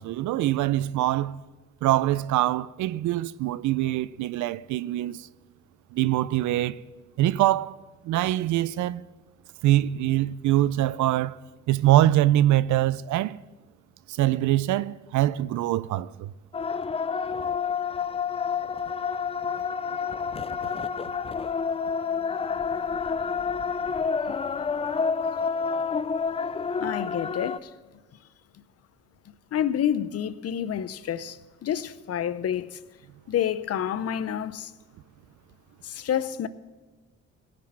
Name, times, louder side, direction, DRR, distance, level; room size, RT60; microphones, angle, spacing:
voice 1, 0.0-1.4 1.8-5.3 5.9-6.8 7.2-7.8 8.0-9.0 9.6-13.4 14.1-16.3, right 14 dB, 75° right, 0.5 m, -24 dB
sound 1, 16.5-27.6, left 5 dB, 20° left, 0.3 m, -29 dB
voice 2, 26.8-27.7 29.5-32.8 33.3-34.7 35.8-36.5, left 9 dB, 55° left, 0.7 m, -28 dB
18.0 x 6.0 x 7.4 m
cardioid pair, 90°, 30 cm